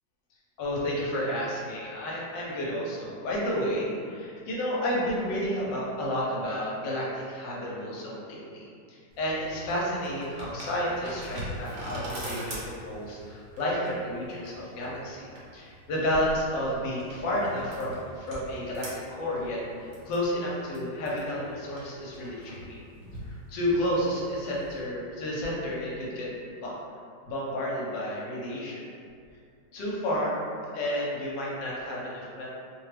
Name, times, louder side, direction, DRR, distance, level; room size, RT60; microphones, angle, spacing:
voice 1, 0.6-22.8 23.2-26.7 27.3-28.8 29.7-32.5, left 1 dB, 80° left, -5 dB, 1.3 m, -31 dB
sound 1, 9.1-24.8, right 1 dB, 60° right, 0.8 m, -43 dB
sound 2, 12.4-13.1 14.5-17.0 17.3-17.4 18.0-18.5, equal, 55° left, 0.4 m, -46 dB
3.0 x 2.2 x 3.2 m, 2.3 s
omnidirectional pair, 1.9 m